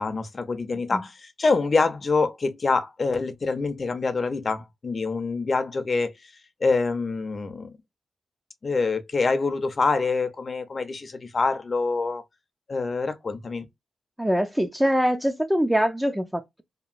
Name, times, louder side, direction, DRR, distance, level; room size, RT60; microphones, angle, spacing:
voice 1, 0.0-6.1 6.6-7.7 8.6-12.2 12.7-13.7, left 4 dB, 45° left, 0.6 m, -25 dB
voice 2, 14.2-16.6, equal, 5° right, 0.4 m, -23 dB
2.9 x 2.6 x 2.4 m
cardioid pair, 85°, 0 cm